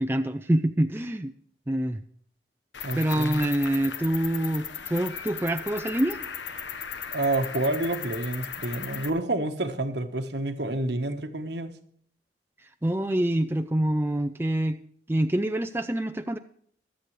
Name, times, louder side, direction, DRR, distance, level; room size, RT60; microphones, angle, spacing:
voice 1, 0.0-1.3 1.7-2.0 2.9-6.2 12.8-14.8 15.1-16.4, right 1 dB, 10° right, 8 dB, 0.4 m, -26 dB
Cricket, 2.7-9.1, left 7 dB, 75° left, 1.2 m, -37 dB
voice 2, 2.8-3.5 7.1-11.7, right 2 dB, 65° right, 8 dB, 1.2 m, -29 dB
24.0 x 8.4 x 3.2 m, 0.62 s
head